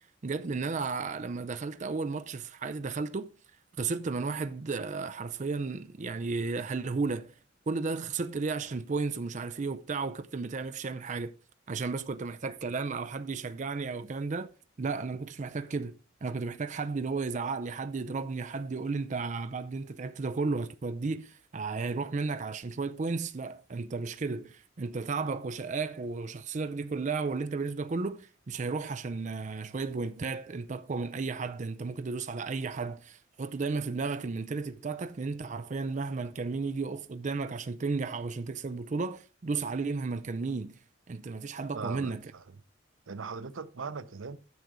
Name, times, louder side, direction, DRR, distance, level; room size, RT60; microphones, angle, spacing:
voice 1, 0.2-3.3 3.8-7.3 7.7-11.3 11.7-14.5 14.8-40.8 41.1-42.3, right 4 dB, 40° right, 0.5 m, -33 dB
voice 2, 41.7-42.4 43.1-44.4, right 5 dB, 85° right, 0.7 m, -39 dB
9.5 x 6.8 x 4.9 m
head